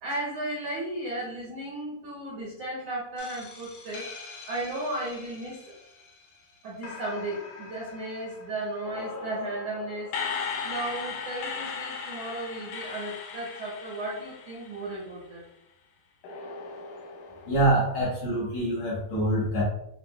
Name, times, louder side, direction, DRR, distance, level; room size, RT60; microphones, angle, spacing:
voice 1, 0.0-4.1 4.5-5.7 6.6-10.1 10.6-15.4, right 1 dB, 85° right, -4 dB, 1.4 m, -35 dB
sound 1, 3.2-6.4 6.8-15.2 16.2-17.7, left 5 dB, 80° left, 1.9 m, -39 dB
voice 2, 17.5-19.6, right 1 dB, 60° left, -7 dB, 1.9 m, -25 dB
7.1 x 2.5 x 2.2 m, 0.81 s
omnidirectional pair, 4.3 m